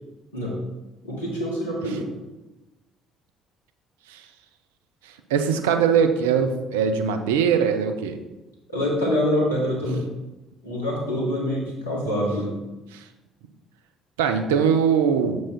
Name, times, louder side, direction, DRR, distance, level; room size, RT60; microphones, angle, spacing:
voice 1, 1.0-2.1 8.7-10.1 10.6-12.5, equal, 85° left, -4 dB, 1.8 m, -25 dB
voice 2, 5.3-8.2 12.9-13.0 14.2-15.4, right 7 dB, 75° right, 7 dB, 0.5 m, -21 dB
7.3 x 4.7 x 4.1 m, 1.1 s
figure-of-eight pair, 50°, 0 cm